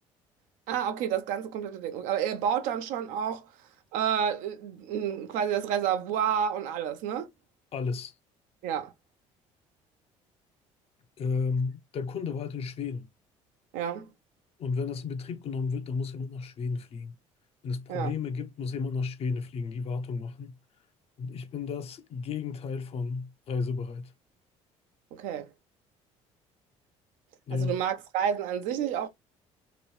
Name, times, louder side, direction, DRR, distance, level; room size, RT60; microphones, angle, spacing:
voice 1, 0.7-3.5 3.9-7.3 8.6-8.9 13.7-14.1 17.9-18.1 25.1-25.5 27.5-29.1, right 8 dB, 80° right, 0.6 m, -30 dB
voice 2, 7.7-8.1 11.2-13.1 14.6-17.2 17.6-20.6 21.2-24.1 27.5-27.8, left 4 dB, 50° left, 0.6 m, -32 dB
3.0 x 2.5 x 3.1 m
supercardioid pair, 85°, 13 cm